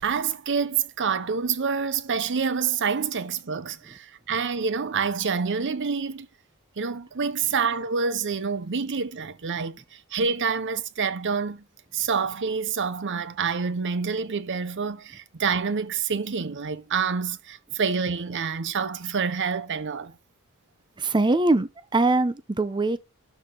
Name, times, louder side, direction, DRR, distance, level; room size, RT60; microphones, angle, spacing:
voice 1, 0.0-6.3 6.8-11.6 11.9-20.1, right 5 dB, 55° right, 0.7 m, -27 dB
voice 2, 21.0-23.0, right 2 dB, 20° right, 0.6 m, -22 dB
12.0 x 4.6 x 3.8 m
head